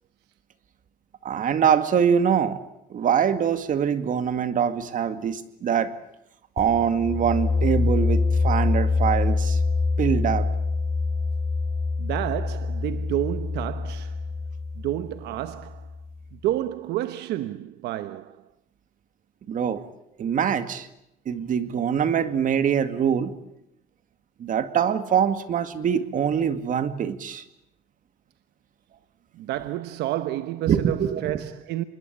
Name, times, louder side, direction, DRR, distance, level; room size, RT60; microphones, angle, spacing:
voice 1, 1.2-2.6 2.9-5.9 6.6-9.6 10.0-10.5 19.5-19.8 20.2-20.9 21.3-23.3 24.4-27.4 30.7-31.4, right 8 dB, 50° right, 2.1 m, -24 dB
sound 1, 6.6-16.2, left 3 dB, 40° left, 5.1 m, -25 dB
voice 2, 12.0-14.2 14.7-15.9 16.3-18.4 29.3-31.8, right 14 dB, 80° right, 1.0 m, -30 dB
26.0 x 21.5 x 8.6 m
cardioid pair, 110°, 17 cm